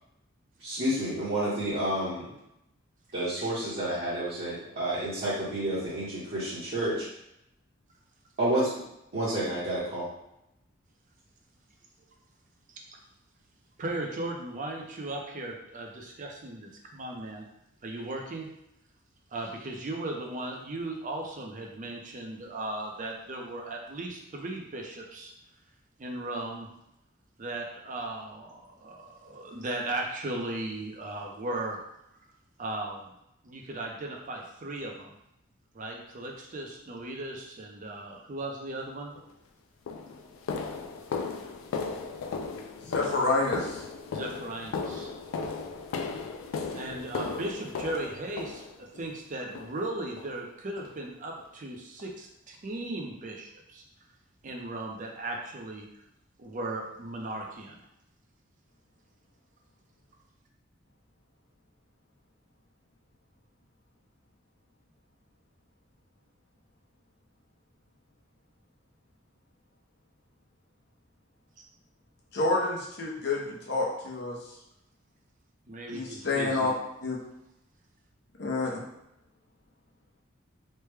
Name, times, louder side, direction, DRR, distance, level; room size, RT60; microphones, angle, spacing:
voice 1, 0.6-2.3 3.1-7.0 8.4-8.7 9.1-10.1, right 1 dB, 55° right, -12 dB, 1.0 m, -30 dB
voice 2, 13.8-17.4 17.8-18.5 19.3-25.3 26.0-26.7 27.4-31.8 32.6-33.1 33.4-35.1 35.7-39.1 44.1-45.1 46.7-53.8 54.4-55.9 56.4-57.8 75.7-76.7, right 2 dB, 40° right, 1 dB, 0.5 m, -37 dB
sound 1, 39.2-39.3 39.9-49.1 49.6-49.9 50.2-50.4 50.8-51.0 51.4-51.5 52.0-52.1, left 4 dB, 85° left, 0.3 m, -36 dB
voice 3, 42.8-43.8 72.3-74.4 75.9-76.7 77.0-77.2 78.4-78.8, left 3 dB, 55° left, -2 dB, 0.7 m, -28 dB
3.2 x 2.1 x 3.3 m, 0.82 s
head